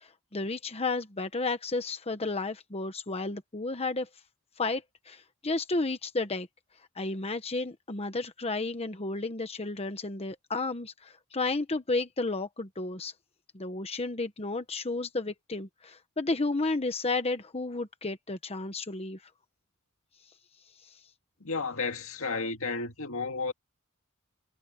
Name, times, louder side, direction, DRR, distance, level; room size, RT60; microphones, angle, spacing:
voice 1, 0.0-4.1 4.6-6.5 7.0-13.1 13.5-19.2, left 3 dB, 30° left, 1.1 m, -32 dB
voice 2, 21.4-23.5, left 4 dB, 70° left, 2.1 m, -32 dB
head